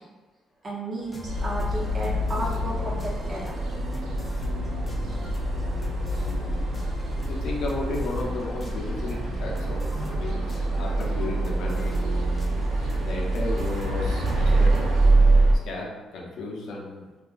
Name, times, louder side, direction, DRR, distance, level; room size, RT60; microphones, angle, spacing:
voice 1, 0.6-3.5 4.3-4.4, right 2 dB, 40° right, -5 dB, 0.8 m, -33 dB
sound 1, 1.0-15.1, equal, 20° left, 0.4 m, -44 dB
sound 2, 1.2-15.6, right 2 dB, 80° right, 0.4 m, -25 dB
voice 2, 7.2-9.8 10.1-11.9 12.9-14.9 15.6-17.1, left 2 dB, 75° left, -2 dB, 0.6 m, -33 dB
2.7 x 2.3 x 2.4 m, 1.2 s
cardioid pair, 90°, 0 cm